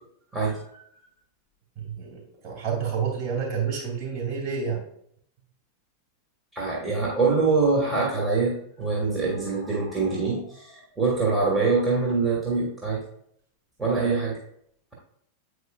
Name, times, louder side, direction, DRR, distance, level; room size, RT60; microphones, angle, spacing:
voice 1, 1.8-4.8, right 6 dB, 35° right, -2 dB, 2.6 m, -29 dB
voice 2, 6.5-13.0 13.8-14.4, right 4 dB, 10° right, -5 dB, 1.7 m, -24 dB
8.2 x 4.9 x 2.4 m, 0.68 s
figure-of-eight pair, 90°, 0 cm